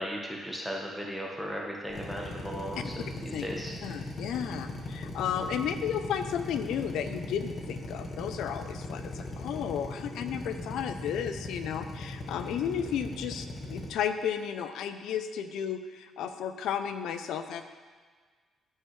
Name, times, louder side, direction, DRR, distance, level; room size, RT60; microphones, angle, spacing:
voice 1, 0.0-2.9 3.2-3.7, equal, ahead, -2 dB, 1.3 m, -36 dB
Drill, 1.9-13.9, left 2 dB, 50° left, 1.3 m, -39 dB
voice 2, 3.8-17.7, left 8 dB, 85° left, 9 dB, 0.6 m, -33 dB
14.0 x 5.6 x 3.3 m, 1.5 s
cardioid pair, 90°, 0 cm